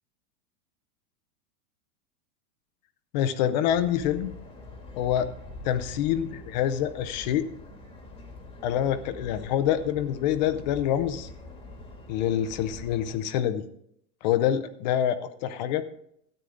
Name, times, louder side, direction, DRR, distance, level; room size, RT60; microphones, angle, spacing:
voice 1, 3.1-4.3 5.0-5.3 5.6-7.5 8.6-11.3 12.1-13.6 14.2-15.8, left 10 dB, 30° left, 13 dB, 0.5 m, -26 dB
sound 1, 3.7-13.2, left 2 dB, 10° left, 1.4 m, -44 dB
13.0 x 9.3 x 3.8 m, 0.70 s
supercardioid pair, 165°, 46 cm